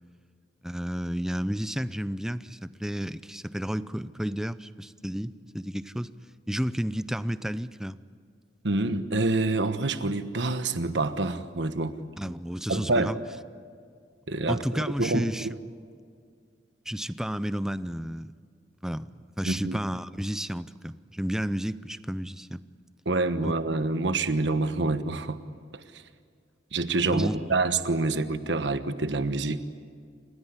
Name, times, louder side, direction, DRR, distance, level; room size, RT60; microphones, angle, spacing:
voice 1, 0.6-6.1 6.5-8.0 12.2-13.2 14.5-15.5 16.9-18.3 18.8-19.1 19.4-22.6 23.4-23.5 27.1-27.4, equal, 5° right, 15 dB, 0.6 m, -31 dB
voice 2, 8.6-12.0 12.7-13.1 14.3-15.6 19.5-19.8 23.0-25.4 26.7-29.6, right 2 dB, 70° right, 10 dB, 1.2 m, -27 dB
29.0 x 16.5 x 9.8 m, 2.1 s
head